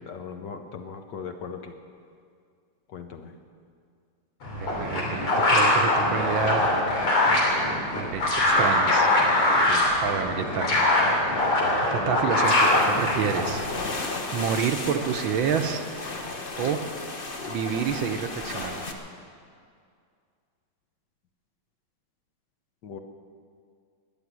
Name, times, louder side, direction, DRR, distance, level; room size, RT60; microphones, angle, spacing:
voice 1, 0.0-1.8 2.9-3.4 9.7-9.9 22.8-23.0, left 6 dB, 60° left, 6 dB, 1.3 m, -38 dB
sound 1, 4.4-13.7, left 1 dB, 85° left, 4.1 m, -22 dB
voice 2, 4.6-6.7 7.9-9.1 10.0-10.7 11.9-13.6 14.3-15.8 16.6-16.8 17.5-18.8, right 7 dB, 70° right, 7 dB, 1.5 m, -28 dB
sound 2, 12.4-18.9, left 3 dB, 35° left, 1.0 m, -34 dB
14.0 x 9.8 x 9.7 m, 2.2 s
omnidirectional pair, 2.4 m